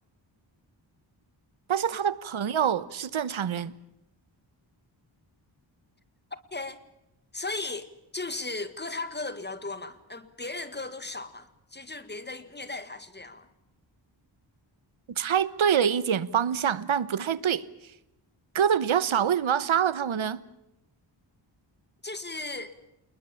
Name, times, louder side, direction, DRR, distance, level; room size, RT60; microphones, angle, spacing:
voice 1, 1.7-3.7 15.2-17.6 18.5-20.4, right 8 dB, 85° right, 1.2 m, -25 dB
voice 2, 6.5-6.8 7.3-13.5 22.0-22.8, left 3 dB, 20° left, 1.9 m, -36 dB
28.5 x 21.0 x 7.2 m
wide cardioid pair, 140°, 46 cm